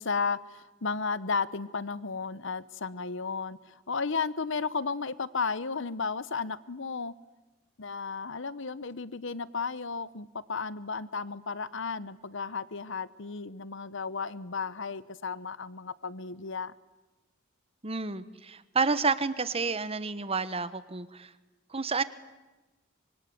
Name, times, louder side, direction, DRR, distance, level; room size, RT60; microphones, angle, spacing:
voice 1, 0.0-7.1 7.8-16.7, left 4 dB, 65° left, 17 dB, 1.0 m, -34 dB
voice 2, 17.8-21.3 21.7-22.0, right 4 dB, 30° right, 14 dB, 1.1 m, -30 dB
26.0 x 23.5 x 9.5 m, 1.1 s
head